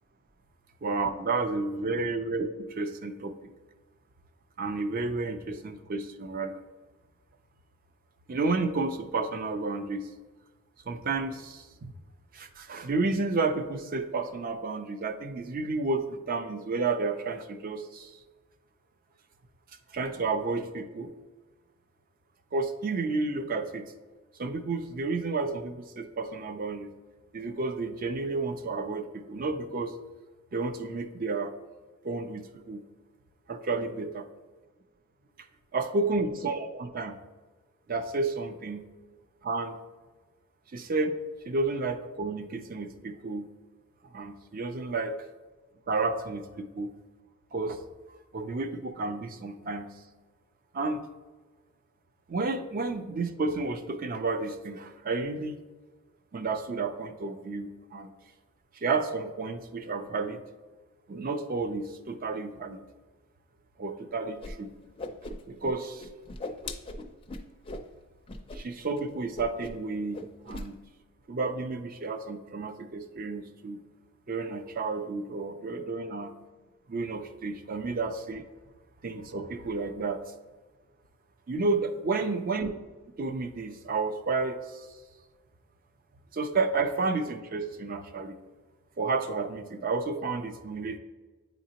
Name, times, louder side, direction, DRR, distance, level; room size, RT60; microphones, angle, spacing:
voice 1, 0.8-3.5 4.6-6.6 8.3-10.1 10.9-11.9 12.3-18.2 19.9-21.1 22.5-23.9 24.4-26.9 27.3-29.9 30.5-31.5 32.0-32.8 33.5-34.3 35.7-37.2 37.9-38.9 39.4-39.8 40.7-41.2 41.4-43.5 44.1-45.1 45.9-46.9 47.5-47.8 48.3-49.9 50.7-51.0 52.3-55.6 56.3-58.1 58.7-60.4 61.1-62.8 63.8-64.7 65.5-66.1 68.5-70.8 71.3-73.8 74.3-76.3 76.9-78.4 79.0-80.2 81.5-82.7 83.2-84.9 86.3-88.4 89.0-91.0, right 3 dB, 40° right, 8 dB, 0.4 m, -31 dB
Whoosh swoosh swish, 64.4-64.5 64.8-65.7 66.0-67.9 68.3-68.6 68.8-69.0 69.3-69.9 70.1-70.7, left 2 dB, 25° left, 0.4 m, -39 dB
9.2 x 3.9 x 2.8 m, 1.3 s
head